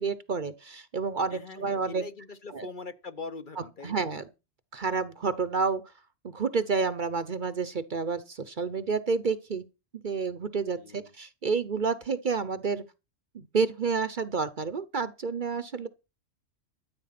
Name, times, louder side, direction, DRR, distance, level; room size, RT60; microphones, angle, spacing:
voice 1, 0.0-2.0 2.5-2.7 3.6-4.3 4.7-5.8 6.3-9.7 10.0-12.8 13.3-15.9, right 5 dB, 45° right, 0.9 m, -29 dB
voice 2, 1.3-4.0 10.8-11.1, left 4 dB, 45° left, 1.0 m, -42 dB
13.5 x 8.4 x 5.9 m
omnidirectional pair, 1.3 m